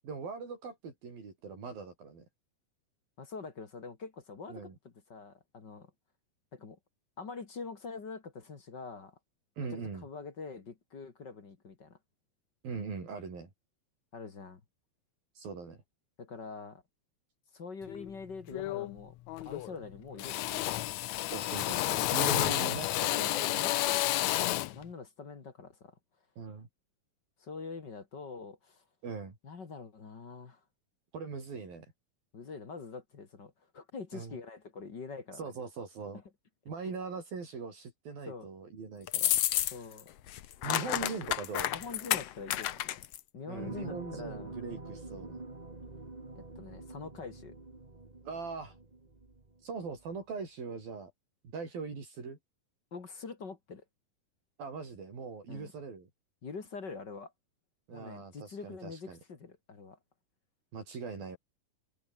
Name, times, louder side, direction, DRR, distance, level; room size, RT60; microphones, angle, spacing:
voice 1, 0.0-2.3 4.5-4.8 9.6-10.1 12.6-13.5 15.4-15.8 21.3-23.7 26.4-26.7 29.0-29.4 31.1-31.9 34.1-34.3 35.3-36.2 36.7-39.3 40.6-41.7 43.5-45.4 48.3-48.8 49.6-51.1 51.5-52.4 54.6-56.1 57.9-59.2 60.7-61.4, right 5 dB, 75° right, 7.6 m, -41 dB
voice 2, 3.2-5.9 6.5-6.8 7.2-9.2 9.6-12.0 14.1-14.6 16.2-16.8 17.5-19.2 19.4-20.8 22.4-22.6 23.1-26.0 27.4-28.8 29.4-30.6 32.3-35.5 38.3-38.5 39.7-40.1 40.6-41.3 41.7-43.0 43.3-44.5 46.3-47.5 52.9-53.8 55.5-55.7 56.4-57.3 57.9-60.0, left 4 dB, 35° left, 2.2 m, -45 dB
Drill, 17.9-18.1 18.5-19.0 19.3-19.8 20.2-24.8, left 16 dB, 85° left, 1.6 m, -31 dB
sound 1, 39.1-40.0 40.3-43.2, left 12 dB, 65° left, 1.6 m, -30 dB
sound 2, 43.5-49.6 50.0-50.1, right 2 dB, 15° right, 1.4 m, -46 dB
omnidirectional pair, 4.2 m